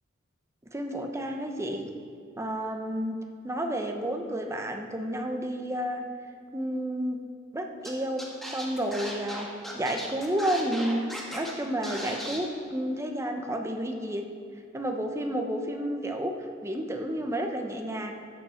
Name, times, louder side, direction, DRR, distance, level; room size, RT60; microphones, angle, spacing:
voice 1, 0.7-1.9 2.4-3.2 3.4-6.0 6.5-7.2 7.5-9.5 9.7-14.2 14.7-16.4 16.6-18.1, right 1 dB, 15° right, 3 dB, 0.9 m, -31 dB
Scratching (performance technique), 7.8-7.9 8.2-11.5 11.8-12.4, equal, ahead, 1.5 m, -37 dB
13.5 x 8.9 x 4.4 m, 2.4 s
head